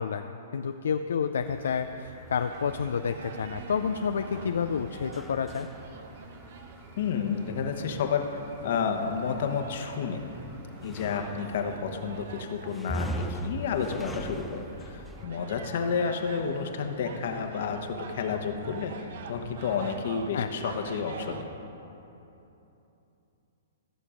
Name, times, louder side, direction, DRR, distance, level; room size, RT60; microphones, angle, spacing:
voice 1, 0.0-5.7 20.3-20.5, left 6 dB, 80° left, 8 dB, 0.4 m, -29 dB
sound 1, 1.4-15.3, equal, 5° left, 0.5 m, -42 dB
sound 2, 2.4-21.4, right 4 dB, 65° right, 0.9 m, -45 dB
voice 2, 7.0-10.2 10.8-21.5, left 6 dB, 60° left, 5 dB, 1.1 m, -31 dB
14.5 x 6.7 x 5.1 m, 2.9 s
hypercardioid pair, 130°, 0 cm